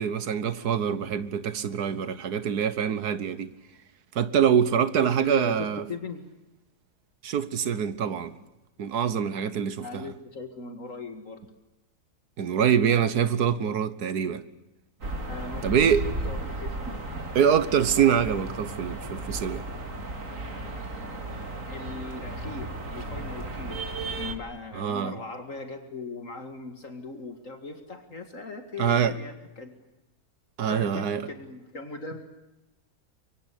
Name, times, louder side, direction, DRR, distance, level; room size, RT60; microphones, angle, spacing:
voice 1, 0.0-3.5 4.1-5.8 7.2-8.3 8.8-10.1 12.4-14.4 15.6-16.0 17.3-19.7 24.7-25.2 28.8-29.2 30.6-31.2, right 8 dB, 80° right, 1.7 m, -25 dB
voice 2, 5.0-6.2 9.8-11.4 15.3-17.0 21.7-23.8 24.1-29.8 30.7-32.2, left 3 dB, 55° left, 2.4 m, -39 dB
sound 1, 15.0-24.4, right 2 dB, 55° right, 3.0 m, -35 dB
25.0 x 23.0 x 8.4 m
omnidirectional pair, 1.6 m